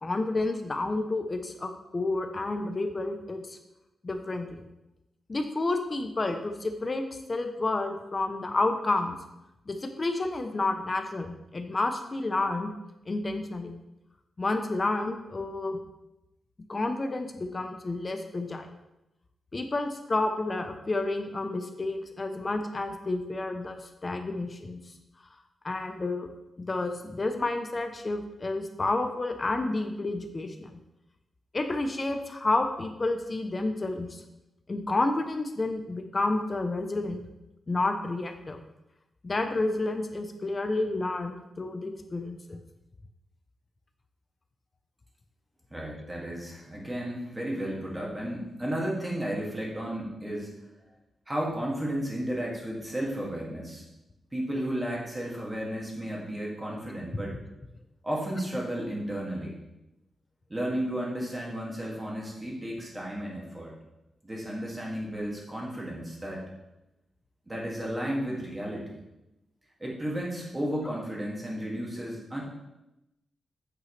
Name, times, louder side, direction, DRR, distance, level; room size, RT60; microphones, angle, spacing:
voice 1, 0.0-3.6 4.0-4.6 5.3-7.0 7.3-9.1 9.7-12.7 13.1-13.8 14.4-15.8 16.7-18.7 19.5-24.8 25.6-26.3 26.6-30.8 31.5-34.2 34.7-37.2 37.7-38.6 39.2-42.6, left 2 dB, 25° left, 6 dB, 0.7 m, -30 dB
voice 2, 45.7-50.5 51.3-53.8 54.3-57.4 58.0-59.6 60.5-63.7 64.2-66.4 67.5-69.0 69.8-72.4, equal, 15° right, -3 dB, 2.2 m, -33 dB
8.4 x 8.1 x 3.3 m, 0.93 s
wide cardioid pair, 150°, 0 cm